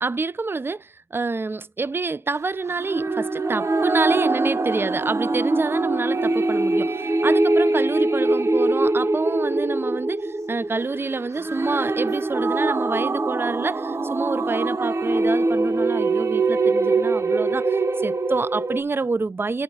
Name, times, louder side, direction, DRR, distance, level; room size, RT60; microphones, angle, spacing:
voice 1, 0.0-19.6, right 3 dB, 40° right, 0.4 m, -27 dB
sound 1, 2.8-18.8, right 2 dB, 60° right, 0.9 m, -23 dB
9.8 x 4.3 x 2.7 m
cardioid pair, 45°, 6 cm